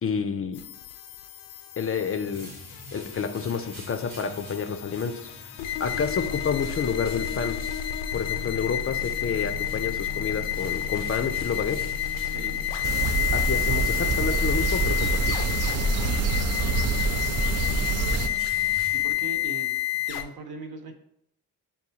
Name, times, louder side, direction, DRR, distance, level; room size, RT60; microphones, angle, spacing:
voice 1, 0.0-0.6 1.8-2.5 2.9-5.3 5.8-7.6 8.1-11.8 13.3-15.4, left 6 dB, 35° left, 7 dB, 0.4 m, -29 dB
sound 1, 0.5-20.2, left 11 dB, 85° left, 0.5 m, -30 dB
sound 2, 1.7-19.6, equal, 85° right, 1.1 m, -46 dB
voice 2, 12.2-12.6 16.6-17.4 18.9-19.7 20.1-20.9, right 2 dB, 60° right, 5 dB, 0.9 m, -40 dB
sound 3, 12.8-18.3, right 4 dB, 40° right, 0.4 m, -26 dB
6.9 x 2.3 x 2.8 m, 0.74 s
supercardioid pair, 55°, 42 cm